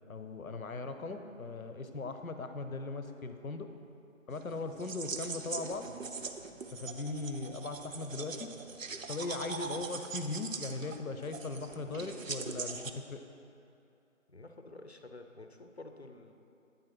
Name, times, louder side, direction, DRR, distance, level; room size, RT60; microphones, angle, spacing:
voice 1, 0.0-3.7 4.3-5.9 6.7-8.5 9.1-13.2, left 3 dB, 90° left, 7 dB, 0.7 m, -39 dB
sound 1, 4.3-12.9, right 4 dB, 70° right, 0.6 m, -42 dB
voice 2, 14.3-16.3, left 2 dB, 55° left, 5 dB, 0.5 m, -50 dB
8.6 x 4.0 x 5.9 m, 2.7 s
figure-of-eight pair, 175°, 40 cm